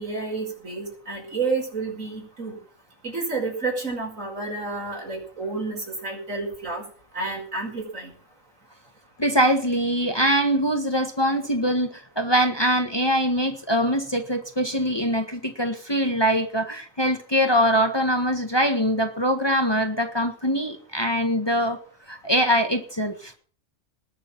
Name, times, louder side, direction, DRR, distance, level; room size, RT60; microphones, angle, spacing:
voice 1, 0.0-2.6 3.0-6.8 7.1-8.1, right 3 dB, 70° right, 1 dB, 5.9 m, -30 dB
voice 2, 9.2-21.8 22.1-23.3, equal, 20° left, 6 dB, 1.6 m, -23 dB
19.5 x 6.9 x 7.4 m, 0.43 s
omnidirectional pair, 1.4 m